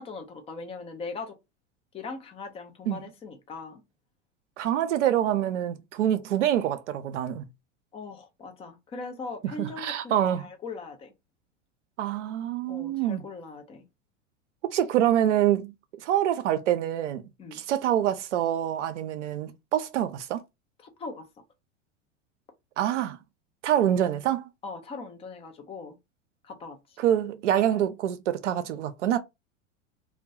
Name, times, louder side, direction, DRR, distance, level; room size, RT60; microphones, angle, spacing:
voice 1, 0.0-1.4 1.9-3.8 7.9-11.1 12.7-13.8 17.4-17.6 20.8-21.3 24.6-26.0 26.4-27.0, left 3 dB, 15° left, 0.4 m, -40 dB
voice 2, 4.6-7.4 9.6-10.5 12.0-13.2 14.7-15.7 16.0-17.2 17.5-20.4 22.8-23.2 23.6-24.5 27.0-29.2, right 11 dB, 70° right, 0.6 m, -26 dB
2.2 x 2.1 x 2.7 m
figure-of-eight pair, 90°, 38 cm